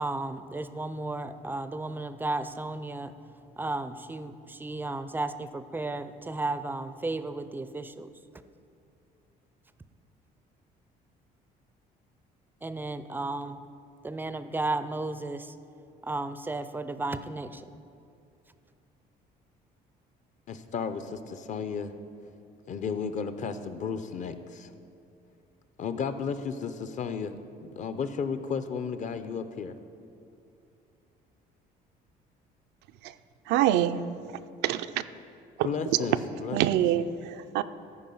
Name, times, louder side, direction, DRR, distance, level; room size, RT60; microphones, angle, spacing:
voice 1, 0.0-3.2 3.6-8.1 12.6-13.6 14.0-15.5 16.0-17.8, right 2 dB, 10° right, 12 dB, 0.4 m, -34 dB
voice 2, 20.5-21.9 22.7-24.7 25.8-27.3 27.6-29.7 35.6-36.8, left 6 dB, 45° left, 11 dB, 0.6 m, -33 dB
voice 3, 33.5-34.0 34.6-35.0 35.6-35.7 36.5-37.6, right 12 dB, 85° right, 11 dB, 0.4 m, -25 dB
13.5 x 5.0 x 5.4 m, 2.6 s
cardioid pair, 110°, 17 cm